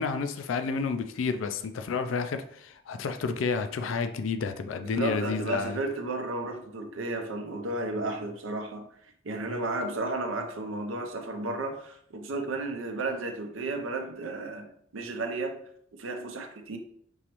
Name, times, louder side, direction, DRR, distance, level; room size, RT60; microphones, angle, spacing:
voice 1, 0.0-5.8, left 5 dB, 70° left, 0.4 m, -30 dB
voice 2, 4.8-8.9 9.2-15.6 16.0-16.8, right 2 dB, 80° right, 0.6 m, -33 dB
5.4 x 3.0 x 3.0 m
head